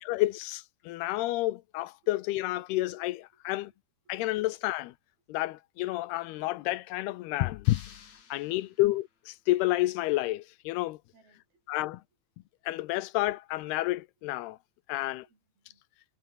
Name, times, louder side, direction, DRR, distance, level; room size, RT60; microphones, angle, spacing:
voice 1, 0.0-3.7 4.1-4.9 5.3-7.8 8.3-11.0 11.7-12.0 12.7-14.6 14.9-15.3, left 17 dB, 80° left, 2.8 m, -30 dB
sound 1, 7.6-9.2, left 7 dB, 45° left, 3.6 m, -53 dB
voice 2, 8.4-8.8 11.1-11.8 14.9-15.8, right 4 dB, 65° right, 9.8 m, -67 dB
omnidirectional pair, 4.7 m